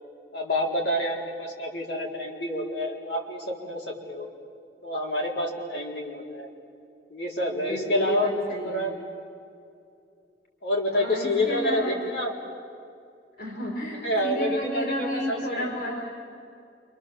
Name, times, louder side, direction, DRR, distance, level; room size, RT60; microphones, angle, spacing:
voice 1, 0.3-4.3 4.8-6.5 7.1-8.3 8.6-8.9 10.6-12.3 14.0-15.7, left 1 dB, 75° left, -1 dB, 4.5 m, -28 dB
voice 2, 7.5-8.9 10.9-12.0 13.4-16.0, equal, 55° left, -1 dB, 4.4 m, -31 dB
28.5 x 26.0 x 7.5 m, 2.5 s
head